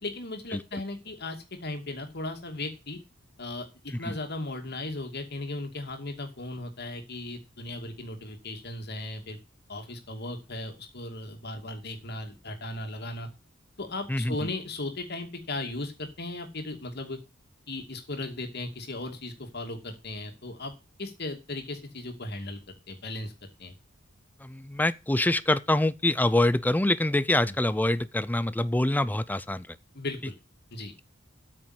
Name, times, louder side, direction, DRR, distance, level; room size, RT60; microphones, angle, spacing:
voice 1, 0.0-3.0 3.4-9.4 9.7-13.3 13.8-17.2 17.7-20.7 21.0-22.6 22.9-23.3 23.6-23.7 27.4-27.6 29.9-30.4 30.7-30.9, left 2 dB, 55° left, 2.5 m, -37 dB
voice 2, 14.1-14.5 24.4-29.8, left 1 dB, 10° left, 0.5 m, -25 dB
8.8 x 6.2 x 8.2 m
head